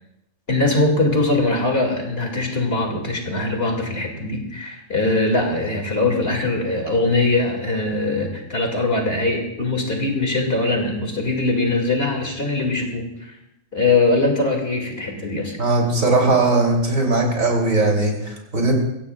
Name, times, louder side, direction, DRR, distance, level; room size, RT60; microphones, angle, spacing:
voice 1, 0.5-13.3 13.7-15.6, left 2 dB, 45° left, 1 dB, 2.7 m, -21 dB
voice 2, 15.6-18.7, right 2 dB, 80° right, 0 dB, 3.6 m, -19 dB
23.0 x 16.0 x 2.4 m, 0.86 s
omnidirectional pair, 1.4 m